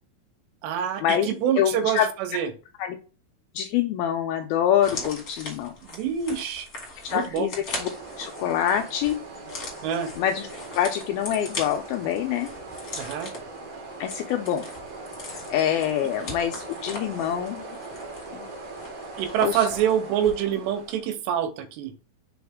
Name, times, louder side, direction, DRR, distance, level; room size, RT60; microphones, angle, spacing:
voice 1, 0.6-2.5 5.9-6.7 7.1-7.5 9.8-10.1 13.0-13.3 19.2-21.9, right 9 dB, 85° right, 10 dB, 3.0 m, -26 dB
voice 2, 1.6-2.4 2.8-3.0 3.6-5.7 7.0-7.5 7.8-7.9 8.2-9.2 10.2-10.5 10.8-12.5 14.0-14.6 15.5-17.7 18.3-18.5 19.4-19.7, left 10 dB, 90° left, 5 dB, 2.1 m, -25 dB
sound 1, 4.8-20.5 20.8-20.9, left 2 dB, 35° left, 1.5 m, -40 dB
sound 2, 7.7-21.1, right 2 dB, 60° right, 3.4 m, -40 dB
6.9 x 4.3 x 3.5 m, 0.35 s
omnidirectional pair, 4.8 m